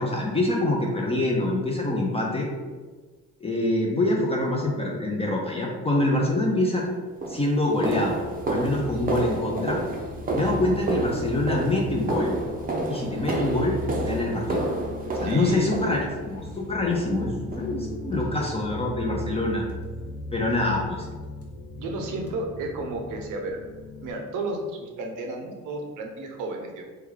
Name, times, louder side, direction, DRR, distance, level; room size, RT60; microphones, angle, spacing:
voice 1, 0.0-2.5 3.4-6.8 7.3-8.2 8.5-9.8 10.3-12.4 12.9-14.7 15.2-19.6 20.3-21.1, left 2 dB, 20° left, -2 dB, 0.5 m, -25 dB
sound 1, 6.5-6.7 7.2-16.4 16.9-17.3 17.5-17.7 18.1-18.3 18.7-18.8 19.3-19.4, right 2 dB, 30° right, 0.5 m, -30 dB
sound 2, 7.9-24.1, left 2 dB, 50° left, 0.8 m, -37 dB
voice 2, 15.2-16.0 21.8-23.6 24.0-26.8, right 2 dB, 90° right, 2 dB, 0.7 m, -33 dB
3.2 x 2.2 x 3.6 m, 1.4 s
cardioid pair, 90°, 30 cm